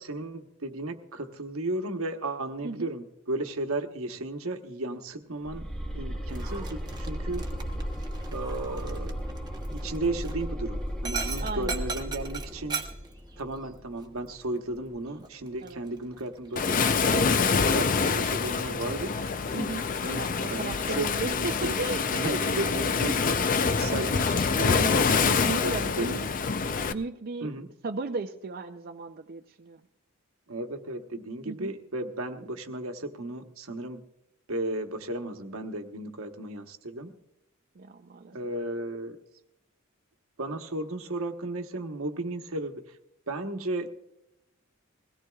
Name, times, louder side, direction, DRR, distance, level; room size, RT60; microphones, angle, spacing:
voice 1, 0.0-5.7 5.9-7.5 8.3-9.2 9.7-12.9 13.4-19.2 20.0-20.2 20.5-21.8 22.1-23.2 23.6-24.9 25.6-26.2 27.4-27.7 30.5-34.0 34.5-37.2 38.3-39.2 40.4-43.0 43.3-43.9, right 2 dB, 80° right, 6 dB, 1.2 m, -34 dB
sound 1, 5.5-14.4, equal, 5° left, 1.1 m, -35 dB
Dog, 6.2-22.9, right 5 dB, 20° right, 1.0 m, -43 dB
voice 2, 11.4-11.8 15.6-15.8 19.5-19.9 20.1-22.0 22.3-22.9 24.6-24.9 25.3-26.3 26.9-29.8 31.4-31.7 37.8-38.3, right 3 dB, 45° right, 6 dB, 0.5 m, -36 dB
Waves surf, 16.6-26.9, left 5 dB, 40° left, 0.5 m, -26 dB
21.5 x 17.0 x 2.4 m, 0.83 s
head